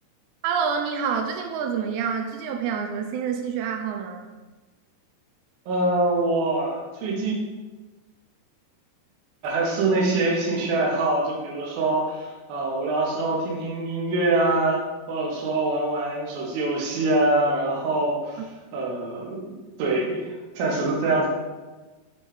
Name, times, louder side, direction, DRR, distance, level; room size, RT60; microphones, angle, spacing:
voice 1, 0.4-4.3, right 6 dB, 90° right, 3 dB, 2.8 m, -27 dB
voice 2, 5.7-7.3 9.4-14.8 15.1-18.4 18.7-21.3, right 2 dB, 70° right, -3 dB, 2.8 m, -24 dB
7.5 x 4.1 x 3.3 m, 1.2 s
omnidirectional pair, 4.9 m